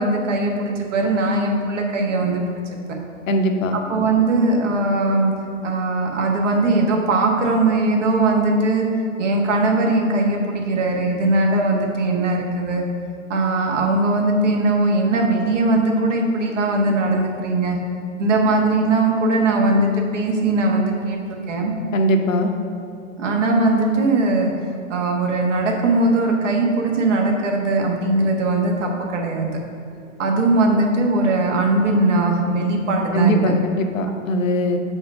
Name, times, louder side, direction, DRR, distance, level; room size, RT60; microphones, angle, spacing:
voice 1, 0.0-2.6 3.7-5.3 5.6-8.9 9.2-12.8 13.3-17.8 18.2-21.7 23.2-24.5 24.9-29.6 30.2-33.5, right 2 dB, 65° right, 1 dB, 1.3 m, -20 dB
voice 2, 3.3-3.8 21.9-22.5 33.1-34.8, equal, 80° left, 5 dB, 0.9 m, -20 dB
5.3 x 4.8 x 6.0 m, 2.5 s
hypercardioid pair, 110°, 39 cm